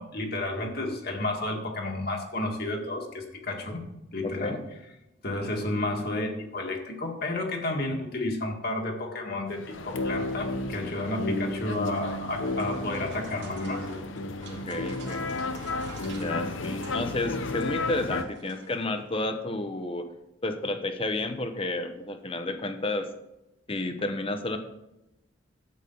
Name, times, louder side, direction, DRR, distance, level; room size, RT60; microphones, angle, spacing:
voice 1, 0.0-3.8 4.1-4.6 5.2-14.0, left 2 dB, 50° left, 1 dB, 2.0 m, -31 dB
voice 2, 4.2-4.6 14.5-15.3 16.2-20.1 20.4-23.1 23.7-24.6, left 2 dB, 30° left, 7 dB, 0.9 m, -31 dB
sound 1, 9.5-18.2, left 2 dB, 75° left, 0.8 m, -32 dB
sound 2, 11.5-19.2, right 4 dB, 60° right, 2.2 m, -49 dB
12.5 x 8.3 x 3.9 m, 0.93 s
head